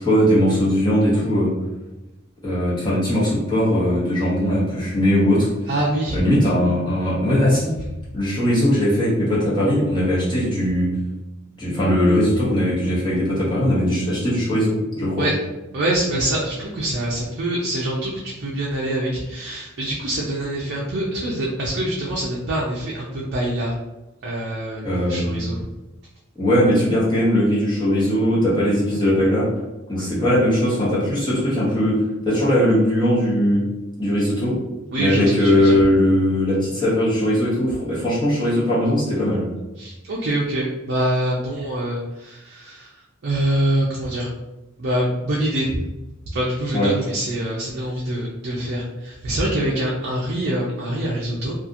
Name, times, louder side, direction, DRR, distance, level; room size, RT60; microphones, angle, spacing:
voice 1, 0.0-1.5 2.4-5.5 6.1-7.8 8.1-10.9 11.6-15.2 24.8-25.5 26.4-29.5 29.9-33.7 34.0-34.6 35.0-39.5 46.7-46.9, equal, 20° left, -8 dB, 1.0 m, -19 dB
voice 2, 5.7-6.2 15.2-15.3 15.7-23.7 24.2-25.6 34.9-35.8 39.8-44.3 44.8-45.8 46.3-51.5, right 1 dB, 55° right, -4 dB, 0.4 m, -25 dB
2.8 x 2.4 x 2.5 m, 1.0 s
head